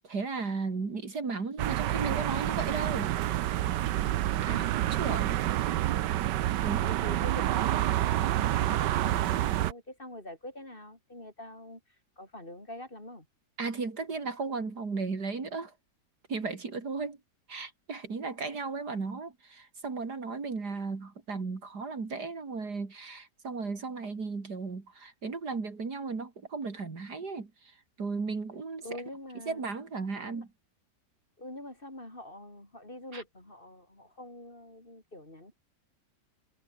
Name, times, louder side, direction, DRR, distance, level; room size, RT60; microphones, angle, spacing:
voice 1, 0.0-3.2 4.4-4.6 5.0-5.4 6.6-6.9 13.6-15.7 16.3-17.2 17.5-28.9 29.5-30.5 33.1-33.2, right 4 dB, 70° right, 3.5 m, -35 dB
sound 1, 1.6-9.7, right 13 dB, 90° right, 1.4 m, -28 dB
voice 2, 4.5-4.9 6.7-11.8 12.2-13.3 28.8-29.6 30.3-30.4 31.4-35.6, left 1 dB, 30° left, 5.0 m, -45 dB
omnidirectional pair, 1.8 m